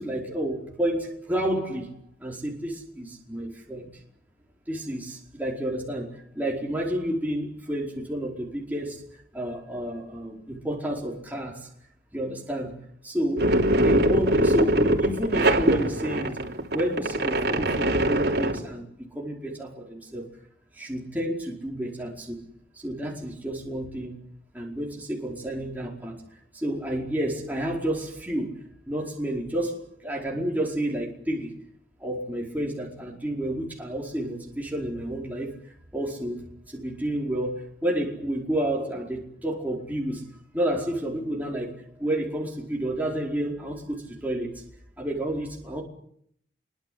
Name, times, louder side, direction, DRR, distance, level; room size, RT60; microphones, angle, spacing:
voice 1, 0.0-1.9 2.2-3.9 4.7-11.7 12.1-12.8 13.0-16.4 16.7-18.8 19.1-20.2 20.7-22.4 22.7-24.2 24.5-26.2 26.5-28.6 28.9-31.6 32.0-35.5 35.9-41.7 42.0-44.6 45.0-45.8, right 1 dB, 10° right, -2 dB, 4.8 m, -30 dB
sound 1, 13.4-18.6, right 1 dB, 65° right, 3.3 m, -23 dB
26.5 x 23.5 x 7.9 m, 0.69 s
head